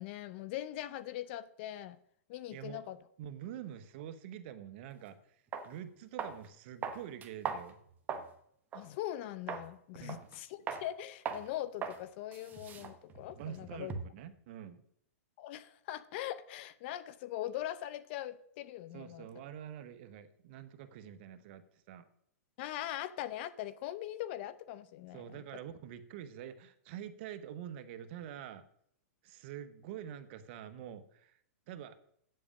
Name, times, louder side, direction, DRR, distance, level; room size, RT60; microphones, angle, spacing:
voice 1, 0.0-2.0 2.3-3.0 8.7-13.9 15.4-19.3 22.6-25.4, left 13 dB, 45° left, 0.6 m, -41 dB
voice 2, 2.5-2.9 3.2-5.2 5.6-7.8 10.0-10.3 13.4-14.8 18.9-22.1 25.1-28.6 29.2-31.4 31.7-32.0, right 10 dB, 50° right, 1.0 m, -46 dB
sound 1, 4.9-5.0 5.5-5.7 6.2-6.5 6.8-8.3 8.7-8.9 9.5-9.7 10.1-10.4 10.7-10.9 11.2-11.5 11.8-12.0 12.3-14.2, right 6 dB, 20° right, 1.0 m, -40 dB
8.5 x 7.8 x 6.4 m
hypercardioid pair, 140°, 8 cm